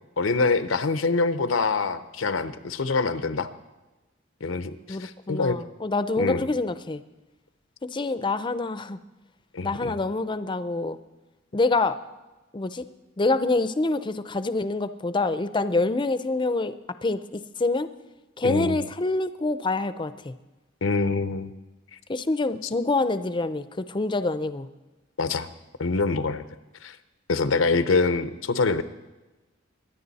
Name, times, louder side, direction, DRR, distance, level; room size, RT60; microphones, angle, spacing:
voice 1, 0.2-3.5 4.4-5.6 6.2-6.5 9.5-9.9 18.4-18.8 20.8-21.5 25.2-25.5 25.8-26.4 26.8-27.0 27.3-28.8, left 3 dB, 90° left, 12 dB, 0.8 m, -25 dB
voice 2, 4.9-7.0 7.9-9.0 9.6-11.0 11.5-12.0 12.5-12.8 13.2-16.7 17.0-17.9 18.4-20.3 22.1-24.7, left 3 dB, 25° left, 12 dB, 0.5 m, -26 dB
23.0 x 10.0 x 4.1 m, 1.1 s
head